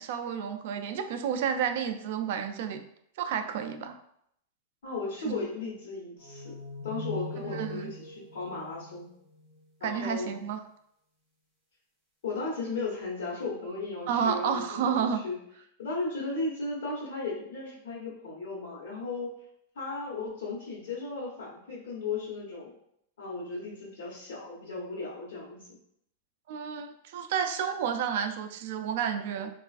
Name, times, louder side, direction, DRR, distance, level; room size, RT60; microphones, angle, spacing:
voice 1, 0.0-2.8 3.2-4.0 5.2-5.5 7.5-7.9 9.8-10.6 14.1-15.2 26.5-29.5, right 7 dB, 55° right, 7 dB, 0.3 m, -30 dB
voice 2, 4.8-6.6 6.8-9.1 9.8-10.4 12.2-15.4 15.8-19.3 19.7-22.7 23.2-25.6, left 3 dB, 75° left, -7 dB, 1.0 m, -35 dB
sound 1, 6.2-9.6, left 2 dB, 10° left, 1.1 m, -41 dB
3.2 x 2.3 x 2.3 m, 0.72 s
supercardioid pair, 165°, 0 cm